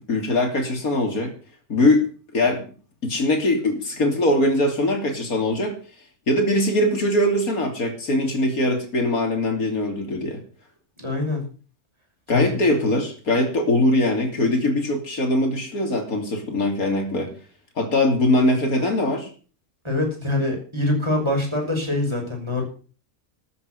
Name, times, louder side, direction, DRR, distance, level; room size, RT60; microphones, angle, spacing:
voice 1, 0.1-1.3 1.7-2.6 3.0-5.8 6.3-10.4 12.3-17.3 17.8-19.3, left 1 dB, 75° left, 4 dB, 3.6 m, -21 dB
voice 2, 11.0-11.5 12.3-12.6 19.8-22.6, left 2 dB, 20° right, 0 dB, 5.9 m, -24 dB
13.5 x 8.0 x 8.1 m, 0.39 s
omnidirectional pair, 1.5 m